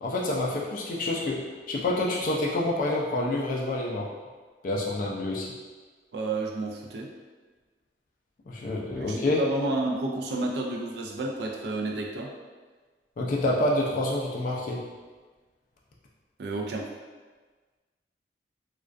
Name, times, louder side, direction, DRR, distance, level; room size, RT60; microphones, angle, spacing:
voice 1, 0.0-1.4 1.7-4.1 4.6-5.5 8.5-9.4 13.2-14.8, left 1 dB, 50° left, -3 dB, 0.3 m, -27 dB
voice 2, 6.1-7.1 8.9-12.3 16.4-16.9, right 2 dB, 65° right, 0 dB, 0.3 m, -31 dB
2.3 x 2.1 x 2.4 m, 1.4 s
head